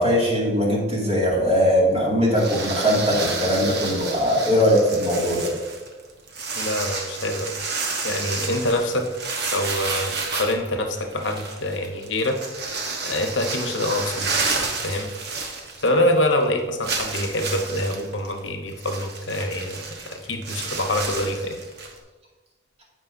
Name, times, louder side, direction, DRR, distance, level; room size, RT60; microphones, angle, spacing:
voice 1, 0.0-5.5, equal, 30° right, -4 dB, 2.4 m, -20 dB
sound 1, 2.3-16.1 16.4-16.5 16.8-22.0, right 4 dB, 55° right, 1.2 m, -30 dB
voice 2, 6.6-7.5 8.0-9.1 9.5-12.6 13.0-14.3 14.8-15.1 15.8-19.8 20.1-21.6, left 1 dB, 65° left, 4 dB, 1.1 m, -25 dB
14.0 x 5.3 x 2.7 m, 1.3 s
head